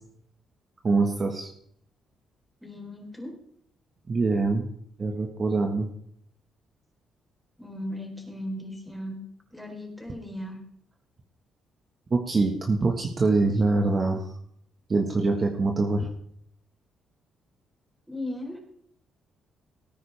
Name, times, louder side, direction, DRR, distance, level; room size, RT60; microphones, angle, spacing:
voice 1, 0.8-1.5 4.1-4.7 5.0-5.9 12.1-14.3 14.9-16.1, right 3 dB, 35° right, 2 dB, 1.5 m, -24 dB
voice 2, 2.6-3.4 7.6-9.2 9.5-10.6 18.1-18.6, left 1 dB, ahead, 1 dB, 4.1 m, -37 dB
18.0 x 9.8 x 3.5 m, 0.67 s
cardioid pair, 90°, 0 cm